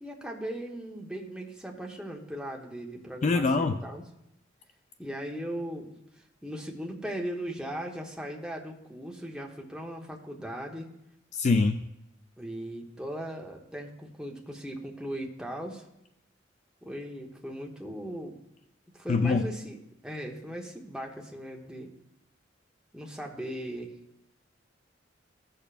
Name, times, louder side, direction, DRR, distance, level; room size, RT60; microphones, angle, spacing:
voice 1, 0.0-4.0 5.0-5.9 6.4-10.9 12.4-15.8 16.8-18.4 18.9-21.9 22.9-23.9, right 1 dB, 5° right, -1 dB, 1.0 m, -38 dB
voice 2, 3.2-3.8 11.3-11.8 19.1-19.4, left 3 dB, 35° left, 8 dB, 0.3 m, -24 dB
15.5 x 6.7 x 2.5 m, 0.84 s
head